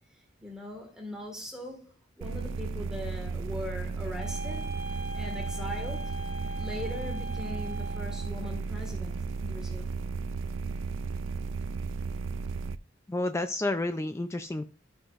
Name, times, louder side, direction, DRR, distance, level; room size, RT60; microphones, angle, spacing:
voice 1, 0.4-4.7 5.1-6.1 6.6-10.0, left 1 dB, 5° right, 1.7 m, -40 dB
sound 1, 2.2-12.8, right 4 dB, 90° right, 0.4 m, -34 dB
sound 2, 4.2-8.4, right 1 dB, 25° right, 1.6 m, -40 dB
voice 2, 13.1-14.6, left 2 dB, 15° left, 0.4 m, -30 dB
12.5 x 5.8 x 2.5 m
head